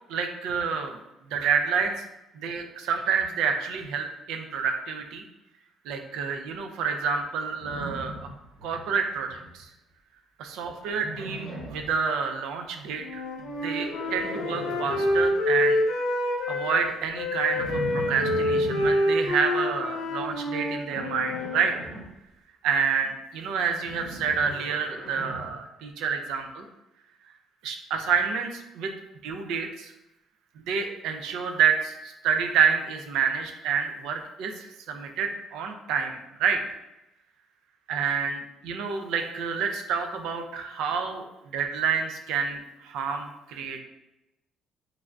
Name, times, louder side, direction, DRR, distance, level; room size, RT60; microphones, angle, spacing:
voice 1, 0.1-1.0 1.3-2.0 2.3-5.2 5.9-8.1 8.6-9.7 10.4-13.2 13.6-15.8 16.5-21.7 22.6-26.6 27.6-28.9 29.2-29.9 30.7-36.6 37.9-41.2 41.5-43.8, right 6 dB, 80° right, 5 dB, 0.3 m, -28 dB
Livestock farm animals working animals, 7.6-8.8 9.1-9.6 10.9-11.9 13.5-15.3 17.6-18.9 20.9-22.0 23.8-25.6, right 1 dB, 60° right, 0.8 m, -38 dB
Wind instrument woodwind instrument, 13.0-16.8 17.1-21.7, left 1 dB, 90° left, 0.5 m, -27 dB
3.2 x 2.4 x 2.2 m, 0.92 s
cardioid pair, 160°, 0 cm